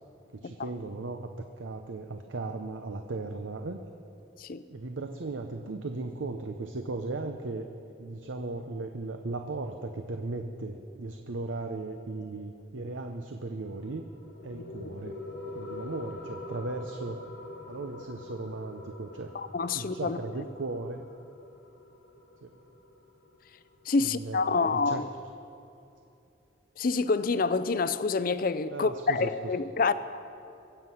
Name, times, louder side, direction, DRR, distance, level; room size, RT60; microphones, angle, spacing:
voice 1, 0.3-3.8 4.7-7.7 8.0-14.1 14.4-15.2 15.6-17.2 17.7-19.3 19.7-21.1 22.4-22.5 24.0-25.0 28.7-29.3, right 3 dB, 80° right, 0.7 m, -37 dB
sound 1, 13.7-24.7, left 2 dB, 75° left, 1.7 m, -45 dB
voice 2, 19.3-20.2 23.9-25.1 26.8-29.9, left 4 dB, 50° left, 0.5 m, -27 dB
23.5 x 8.0 x 5.6 m
head